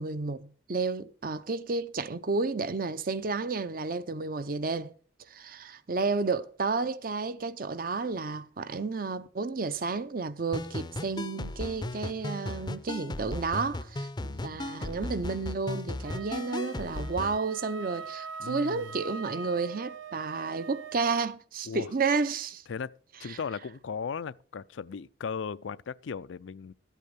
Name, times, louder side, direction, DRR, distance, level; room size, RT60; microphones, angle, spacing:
voice 1, 0.0-4.9 5.3-22.6 23.3-23.4, right 4 dB, 50° right, 0.7 m, -31 dB
sound 1, 10.5-17.4, left 2 dB, 25° left, 0.5 m, -36 dB
voice 2, 14.3-14.7 18.4-19.0 21.7-21.9 22.7-22.9 23.2-26.7, left 6 dB, 80° left, 0.4 m, -37 dB
Wind instrument woodwind instrument, 16.0-21.2, right 5 dB, 85° right, 0.7 m, -43 dB
13.0 x 8.3 x 5.2 m
head